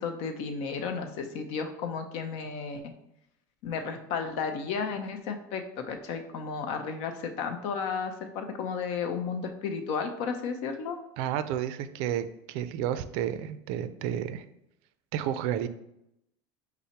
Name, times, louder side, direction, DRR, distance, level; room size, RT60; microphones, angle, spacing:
voice 1, 0.0-2.8 3.6-11.0, left 5 dB, 65° left, 6 dB, 0.6 m, -33 dB
voice 2, 11.2-14.4 15.1-15.7, right 10 dB, 65° right, 12 dB, 0.4 m, -31 dB
5.5 x 2.0 x 4.4 m, 0.81 s
cardioid pair, 145°, 11 cm